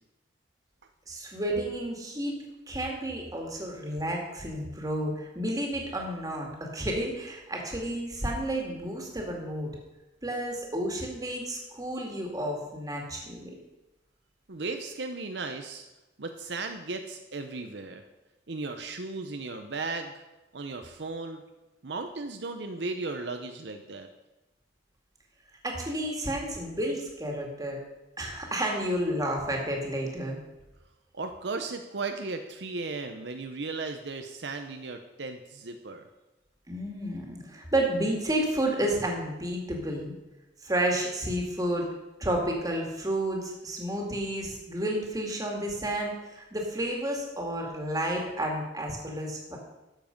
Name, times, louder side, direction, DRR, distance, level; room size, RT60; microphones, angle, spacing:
voice 1, 1.1-2.3 2.7-9.7 10.2-13.5 25.6-27.8 28.2-30.4 36.7-40.1 40.6-41.9 42.2-49.6, right 1 dB, 20° right, 0 dB, 2.2 m, -31 dB
voice 2, 14.5-15.9 16.2-18.0 18.5-20.2 20.5-21.4 21.8-24.1 31.1-36.1, right 3 dB, 70° right, 6 dB, 0.8 m, -36 dB
12.5 x 7.4 x 5.3 m, 1.0 s
head